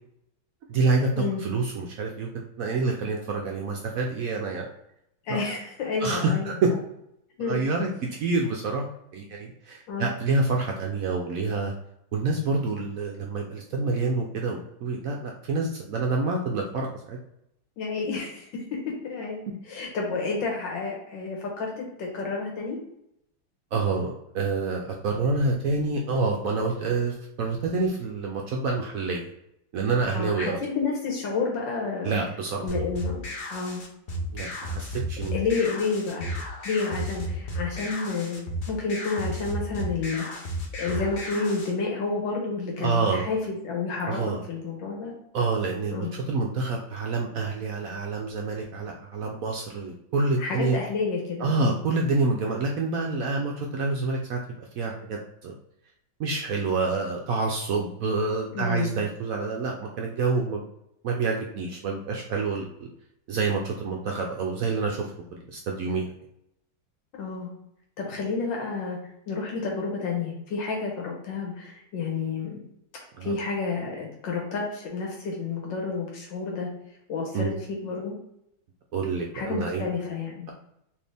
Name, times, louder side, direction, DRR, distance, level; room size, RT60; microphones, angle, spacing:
voice 1, 0.7-2.3 2.6-4.7 5.3-5.4 6.0-6.7 7.4-7.9 8.2-8.8 9.1-11.7 12.1-17.2 23.7-29.2 29.7-30.6 32.0-32.7 34.3-35.3 42.8-43.3 44.1-44.4 45.3-50.8 51.4-55.5 56.2-60.7 61.0-62.7 63.3-66.1 73.2-73.3 77.3-77.5 78.9-79.9, right 3 dB, 75° right, 0 dB, 0.8 m, -27 dB
voice 2, 5.2-6.6 7.4-7.6 9.9-10.1 17.8-18.5 19.1-19.4 19.7-22.8 30.1-32.2 32.6-33.2 33.5-33.8 35.3-36.3 36.6-38.4 38.7-40.5 40.8-45.1 45.9-46.1 50.4-51.7 58.5-59.0 67.2-67.5 68.0-69.0 69.3-72.6 73.2-76.7 77.1-78.1 79.3-80.5, left 4 dB, 90° left, -1 dB, 1.6 m, -30 dB
sound 1, 32.7-41.7, equal, 65° left, 0.5 m, -33 dB
4.4 x 2.9 x 3.3 m, 0.79 s
omnidirectional pair, 1.9 m